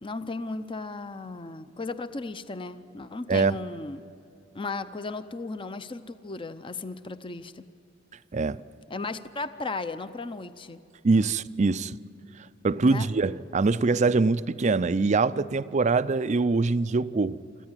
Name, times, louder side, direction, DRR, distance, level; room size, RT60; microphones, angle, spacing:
voice 1, 0.0-4.0 4.5-7.7 8.9-10.8 12.8-13.1, left 3 dB, 25° left, 0.6 m, -35 dB
voice 2, 11.0-12.0 12.6-17.4, right 3 dB, 35° right, 0.5 m, -23 dB
25.5 x 14.5 x 9.0 m
head